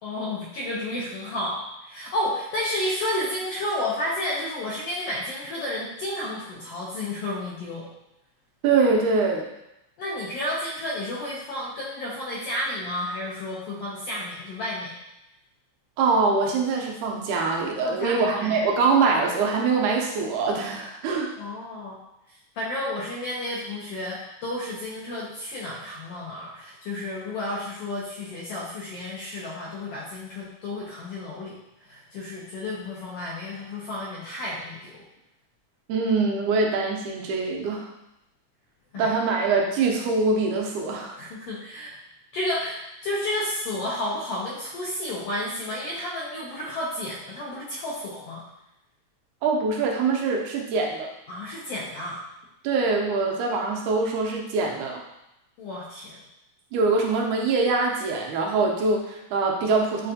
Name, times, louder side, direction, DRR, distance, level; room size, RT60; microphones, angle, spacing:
voice 1, 0.0-7.9 10.0-14.9 17.8-18.7 21.4-22.0 22.5-31.6 31.9-35.0 38.9-39.1 41.2-42.0 42.3-48.4 51.3-52.2 55.6-56.2, left 1 dB, 75° left, -5 dB, 1.4 m, -31 dB
voice 2, 8.6-9.5 16.0-21.3 35.9-37.8 38.9-41.2 49.4-51.1 52.6-55.0 56.7-60.1, right 4 dB, 85° right, 0 dB, 2.1 m, -23 dB
6.7 x 2.4 x 2.6 m, 0.87 s
omnidirectional pair, 3.4 m